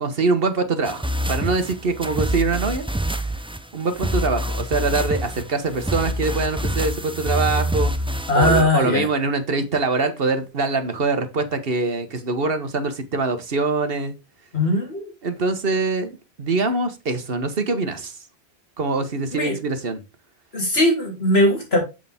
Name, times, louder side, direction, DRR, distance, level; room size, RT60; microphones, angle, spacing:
voice 1, 0.0-2.9 3.7-7.9 8.3-14.1 15.2-18.1 18.8-20.0, right 3 dB, 65° right, 1.4 m, -24 dB
sound 1, 0.8-8.6, equal, 5° right, 0.4 m, -26 dB
voice 2, 8.3-9.1 14.5-15.1 19.3-19.6 20.5-21.8, left 1 dB, 75° left, 3.8 m, -19 dB
7.5 x 6.5 x 3.5 m
omnidirectional pair, 1.1 m